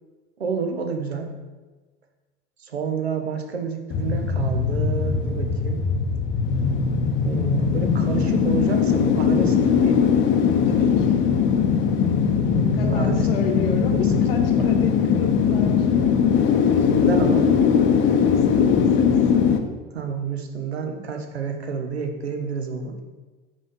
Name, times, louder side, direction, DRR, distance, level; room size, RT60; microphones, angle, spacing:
voice 1, 0.4-1.3 2.6-5.8 7.2-10.0 12.5-13.3 13.9-14.0 14.3-14.7 16.9-17.5 19.9-23.0, right 6 dB, 75° right, 4 dB, 0.9 m, -29 dB
sound 1, 3.9-19.6, left 7 dB, 40° left, 0.7 m, -20 dB
voice 2, 10.6-11.2 12.8-16.5 18.0-19.3, left 4 dB, 65° left, 6 dB, 1.1 m, -33 dB
5.4 x 5.0 x 5.2 m, 1.3 s
figure-of-eight pair, 70°, 32 cm